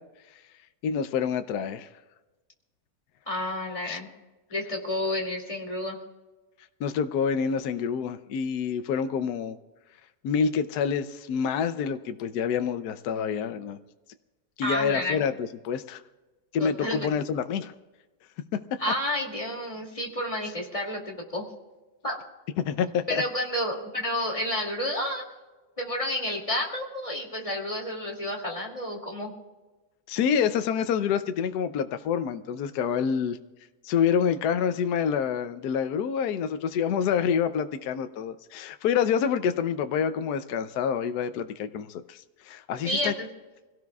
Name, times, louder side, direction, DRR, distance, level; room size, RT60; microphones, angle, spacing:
voice 1, 0.8-1.9 3.9-4.0 6.8-9.6 10.2-13.8 14.6-16.0 16.5-17.7 22.6-23.2 30.1-33.4 33.8-43.1, left 7 dB, 70° left, 9 dB, 1.2 m, -27 dB
voice 2, 3.3-4.1 4.5-6.0 14.6-15.2 16.6-17.1 18.8-21.5 22.0-22.2 23.1-25.2 25.8-29.3 42.8-43.3, left 1 dB, 20° left, -1 dB, 2.6 m, -30 dB
25.5 x 17.5 x 2.4 m, 1.2 s
omnidirectional pair, 1.9 m